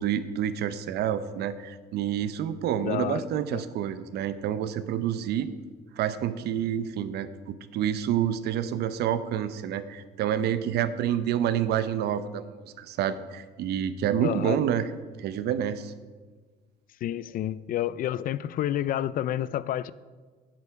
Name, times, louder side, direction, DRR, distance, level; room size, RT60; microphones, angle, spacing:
voice 1, 0.0-5.5 6.0-12.5 12.8-14.9 15.2-15.9, right 10 dB, 75° right, 12 dB, 0.8 m, -28 dB
voice 2, 2.8-3.3 3.5-3.6 14.2-14.6 17.0-19.9, left 12 dB, 55° left, 18 dB, 0.5 m, -29 dB
11.5 x 10.5 x 4.8 m, 1.4 s
cardioid pair, 110°, 17 cm